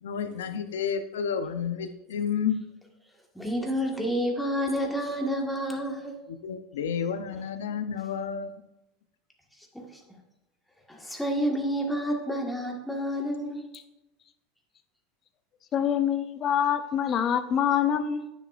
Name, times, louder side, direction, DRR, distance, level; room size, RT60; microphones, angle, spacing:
voice 1, 0.0-2.6 6.4-8.5, left 7 dB, 90° left, 9 dB, 0.6 m, -30 dB
voice 2, 3.3-6.2 7.3-7.4 9.7-9.9 10.9-13.7, equal, 5° left, 1 dB, 1.6 m, -29 dB
voice 3, 15.7-18.3, left 9 dB, 40° left, 10 dB, 0.7 m, -25 dB
10.0 x 6.2 x 2.5 m, 0.95 s
supercardioid pair, 110°, 0 cm